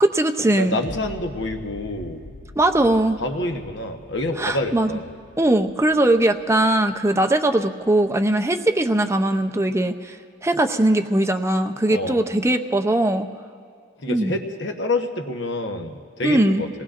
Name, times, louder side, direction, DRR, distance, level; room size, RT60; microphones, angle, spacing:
voice 1, 0.0-0.8 2.6-3.2 4.4-4.9 5.4-10.2 10.4-13.3 14.1-14.3 16.2-16.6, right 1 dB, 15° right, 7 dB, 0.6 m, -20 dB
voice 2, 0.6-2.2 3.2-5.1 11.9-12.2 14.0-16.7, left 2 dB, 60° left, 4 dB, 1.1 m, -27 dB
sound 1, 0.8-7.9 8.3-8.4, left 2 dB, 35° left, 0.5 m, -43 dB
28.0 x 19.5 x 2.5 m, 2.3 s
head